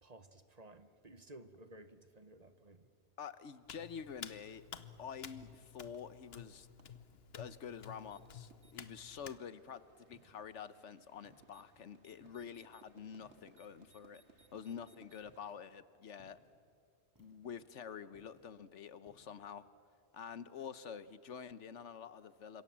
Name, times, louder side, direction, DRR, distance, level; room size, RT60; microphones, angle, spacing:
voice 1, 0.0-2.9, right 1 dB, 35° right, 10 dB, 1.2 m, -56 dB
voice 2, 3.2-4.6 5.0-6.7 7.3-14.2 14.5-16.4 17.2-19.6 20.1-22.6, left 7 dB, 85° left, 14 dB, 1.3 m, -48 dB
Hands, 3.6-9.4, left 7 dB, 60° left, 1.2 m, -52 dB
sound 1, 5.3-15.6, right 3 dB, 70° right, 2.0 m, -67 dB
sound 2, 9.2-9.6 10.1-10.7 11.2-11.6 12.2-12.6 13.2-13.7 15.2-15.6 16.2-16.6 17.1-17.6 18.1-18.6 19.0-19.4, equal, 15° right, 3.2 m, -69 dB
29.5 x 26.5 x 7.4 m, 2.3 s
omnidirectional pair, 1.2 m